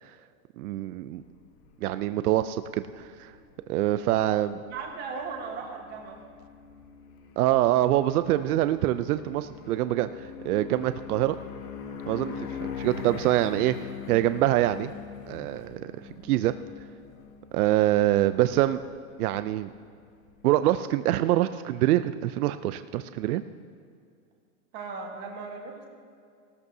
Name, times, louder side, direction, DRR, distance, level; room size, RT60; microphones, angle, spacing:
voice 1, 0.6-1.2 1.8-3.3 3.7-4.6 7.4-11.4 12.1-14.9 15.3-15.9 16.2-16.5 17.5-18.8 19.2-19.7 20.4-23.4, right 14 dB, 80° right, 12 dB, 0.5 m, -25 dB
sound 1, 1.2-20.5, left 6 dB, 80° left, 1.4 m, -43 dB
voice 2, 4.7-6.2 24.7-25.9, right 4 dB, 25° right, 2 dB, 1.3 m, -37 dB
18.0 x 13.5 x 2.7 m, 2.2 s
supercardioid pair, 165°, 44 cm